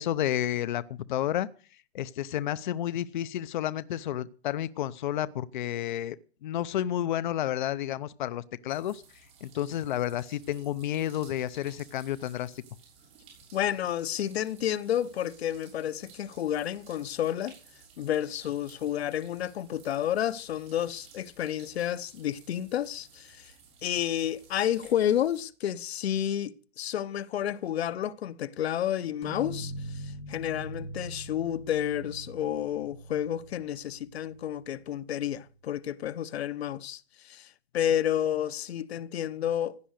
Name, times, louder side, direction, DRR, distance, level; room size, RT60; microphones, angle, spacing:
voice 1, 0.0-1.5 1.9-6.2 6.4-9.0 9.4-12.6, left 12 dB, 50° left, 0.7 m, -31 dB
sound 1, 8.7-25.4, right 5 dB, 20° right, 6.6 m, -56 dB
voice 2, 13.5-17.5 18.0-23.5 23.8-39.8, left 10 dB, 80° left, 1.0 m, -30 dB
sound 2, 29.2-34.7, right 1 dB, 20° left, 2.4 m, -42 dB
16.0 x 11.0 x 6.5 m
supercardioid pair, 180°, 32 cm